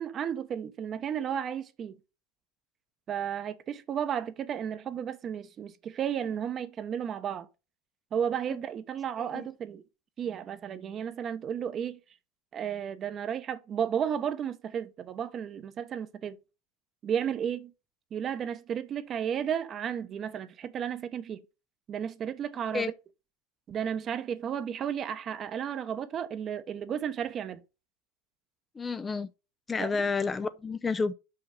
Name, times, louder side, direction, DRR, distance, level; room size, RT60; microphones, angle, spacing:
voice 1, 0.0-2.0 3.1-7.5 8.1-9.8 10.2-12.0 12.5-16.4 17.0-17.7 18.1-21.4 21.9-22.9 23.7-27.6 29.8-29.9, right 8 dB, 35° right, 0.9 m, -33 dB
voice 2, 28.8-29.3 29.7-31.1, left 4 dB, 20° left, 0.5 m, -30 dB
5.8 x 4.9 x 6.5 m
supercardioid pair, 115°, 0 cm